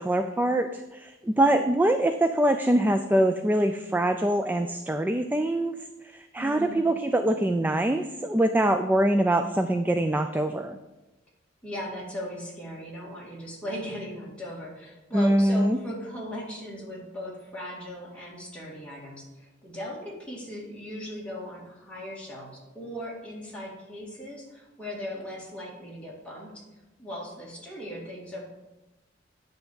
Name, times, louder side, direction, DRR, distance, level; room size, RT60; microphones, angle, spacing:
voice 1, 0.0-5.8 6.1-10.8 15.1-15.8, right 1 dB, 10° right, 7 dB, 0.3 m, -24 dB
voice 2, 6.4-6.8 11.6-26.6 27.0-28.4, equal, 5° left, -5 dB, 2.1 m, -38 dB
10.0 x 3.5 x 6.9 m, 1.0 s
head